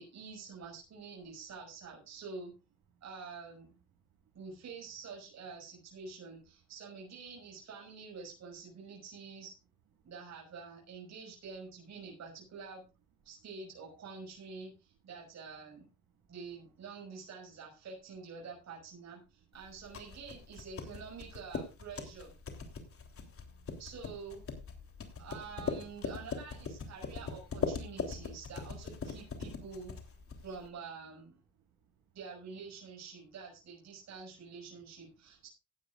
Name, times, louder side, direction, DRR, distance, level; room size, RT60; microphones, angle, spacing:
voice 1, 0.0-2.5 3.0-3.7 4.3-9.5 10.0-12.8 13.2-15.9 16.3-22.3 23.8-24.4 25.2-30.0 30.4-31.4 32.1-35.5, right 5 dB, 60° right, -1 dB, 5.9 m, -47 dB
voice 2, 3.9-4.4 10.0-10.1 12.1-12.2 13.3-13.5 16.1-16.3 19.2-19.3 22.7-23.8 24.8-25.3 30.3-30.5 31.5-32.2, right 7 dB, 85° right, 3 dB, 7.4 m, -72 dB
sound 1, 19.6-30.7, left 5 dB, 45° left, 3.3 m, -41 dB
17.5 x 12.0 x 2.5 m, 0.29 s
cardioid pair, 90°, 30 cm